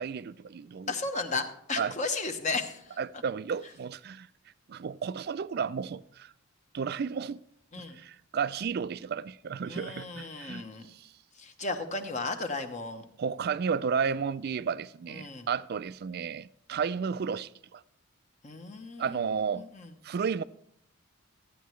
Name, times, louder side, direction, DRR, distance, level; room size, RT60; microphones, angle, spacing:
voice 1, 0.0-0.9 1.8-1.9 3.0-4.3 4.7-6.3 6.7-7.4 7.8-10.6 13.2-17.8 19.0-19.6 20.0-20.4, right 6 dB, 45° right, 0.3 m, -32 dB
voice 2, 0.9-3.2 7.7-8.0 9.6-10.9 11.4-13.0 15.1-15.5 18.4-19.9, left 3 dB, 35° left, 0.9 m, -35 dB
14.0 x 9.2 x 3.1 m
head